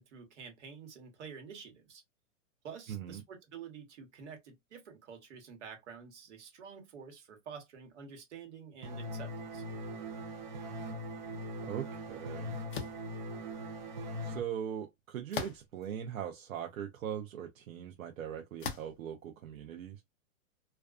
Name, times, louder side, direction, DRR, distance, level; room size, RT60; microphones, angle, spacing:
voice 1, 0.0-2.0 2.6-9.6, right 6 dB, 55° right, 1.1 m, -49 dB
voice 2, 2.9-3.2 11.6-12.6 14.2-20.0, right 9 dB, 80° right, 0.6 m, -40 dB
sound 1, 8.8-14.4, equal, 35° right, 0.5 m, -41 dB
sound 2, 12.7-13.0 15.3-15.9 16.6-16.7 18.6-19.0, left 6 dB, 40° left, 0.4 m, -39 dB
2.4 x 2.3 x 2.4 m
hypercardioid pair, 165°, 41 cm